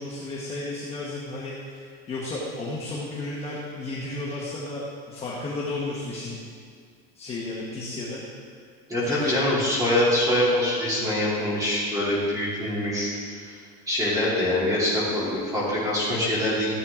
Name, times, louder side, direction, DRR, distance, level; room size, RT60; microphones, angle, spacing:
voice 1, 0.0-6.4 7.1-8.2 9.0-9.4, left 2 dB, 20° left, -6 dB, 1.1 m, -33 dB
voice 2, 8.9-13.4 13.9-16.7, left 1 dB, 10° right, -8 dB, 2.8 m, -24 dB
15.0 x 8.4 x 3.7 m, 2.1 s
cardioid pair, 175°, 34 cm